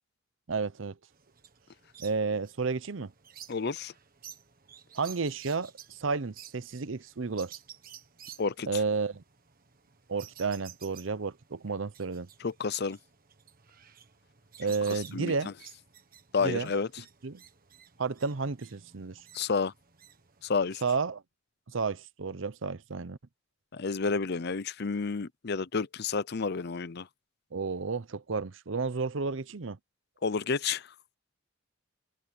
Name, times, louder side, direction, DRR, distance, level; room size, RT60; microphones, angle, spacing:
voice 1, 0.5-0.9 2.0-3.1 4.9-7.5 8.7-9.2 10.1-12.3 14.6-15.5 16.4-16.7 17.2-17.4 18.0-19.2 20.8-21.2 21.7-23.2 27.5-29.8, right 4 dB, 70° right, 0.7 m, -32 dB
sound 1, 1.1-20.9, right 9 dB, 45° right, 1.6 m, -53 dB
voice 2, 3.5-3.9 8.4-8.8 12.4-13.0 14.9-15.3 16.3-16.9 19.3-19.7 20.4-20.8 23.7-27.1 30.2-30.9, left 4 dB, 55° left, 0.6 m, -30 dB
head